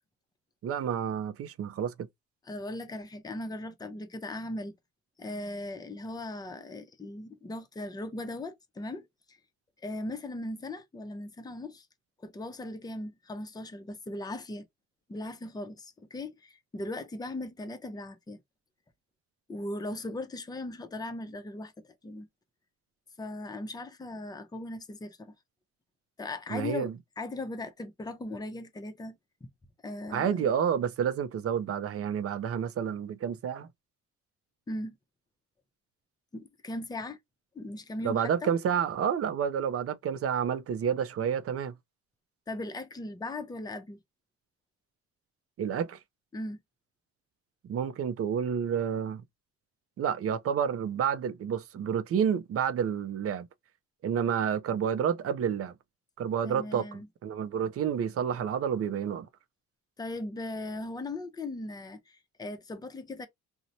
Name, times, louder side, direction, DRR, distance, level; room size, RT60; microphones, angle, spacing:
voice 1, 0.6-1.9 26.5-26.9 30.1-33.7 38.0-41.7 45.6-46.0 47.6-49.2 50.0-53.5 54.0-55.7 56.2-59.3, right 8 dB, 50° right, 0.5 m, -29 dB
voice 2, 2.5-4.7 5.2-9.4 9.8-11.9 12.2-14.7 15.1-18.4 19.5-22.3 23.2-25.3 26.2-26.9 27.2-29.2 29.8-30.4 34.7-34.9 36.3-37.2 37.5-38.5 42.5-44.0 46.3-46.6 56.4-57.1 60.0-63.3, left 2 dB, 15° left, 0.6 m, -38 dB
2.9 x 2.1 x 2.6 m
cardioid pair, 90°, 30 cm